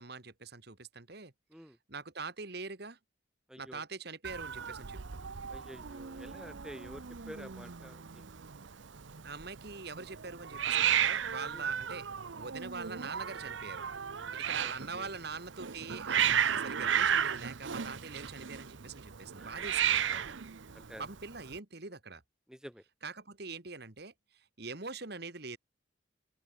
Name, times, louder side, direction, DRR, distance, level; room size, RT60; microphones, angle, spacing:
voice 1, 0.0-1.3 1.9-3.0 3.6-5.3 9.2-13.9 14.1-20.3 21.0-22.2 23.0-25.6, right 4 dB, 50° right, 1.9 m, -44 dB
voice 2, 3.5-3.8 5.5-8.3 11.5-11.7 14.5-15.2 19.4-20.4 20.7-21.1 22.5-22.8, equal, 5° right, 4.1 m, -50 dB
Hiss, 4.2-21.6, right 9 dB, 70° right, 0.8 m, -34 dB
open air
head